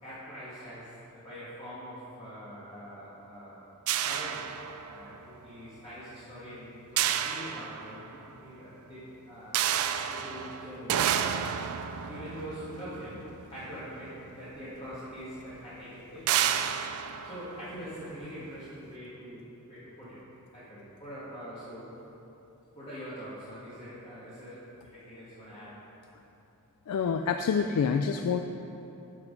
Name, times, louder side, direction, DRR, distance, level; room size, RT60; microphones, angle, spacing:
voice 1, 0.0-3.6 4.0-4.5 4.9-9.6 10.0-11.1 12.1-16.4 17.2-20.2 20.5-21.9 22.7-25.8, equal, 25° left, -12 dB, 1.8 m, -44 dB
sound 1, 3.9-5.2 7.0-8.3 9.5-14.0 14.9-15.0 15.4-15.6 16.3-18.3, right 9 dB, 70° right, 0.4 m, -31 dB
voice 2, 26.9-28.4, left 6 dB, 85° left, 6 dB, 0.3 m, -27 dB
7.9 x 5.9 x 5.2 m, 2.9 s
head